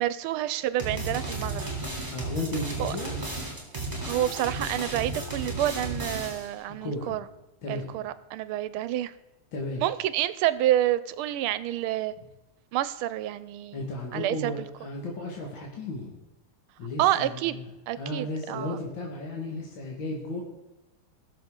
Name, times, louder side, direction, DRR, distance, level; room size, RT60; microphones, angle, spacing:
voice 1, 0.0-1.7 2.8-2.9 4.0-7.2 7.7-9.1 9.8-12.1 12.7-13.8 14.1-14.5 17.0-17.6 17.9-18.8, right 13 dB, 85° right, 15 dB, 1.4 m, -28 dB
sound 1, 0.8-6.5, right 2 dB, 20° right, 3.1 m, -34 dB
voice 2, 2.1-3.2 6.8-7.2 7.6-7.9 9.5-9.8 13.7-16.2 16.8-17.7 18.0-20.4, left 1 dB, 65° left, -2 dB, 2.3 m, -34 dB
19.0 x 6.5 x 3.7 m, 1.0 s
omnidirectional pair, 2.3 m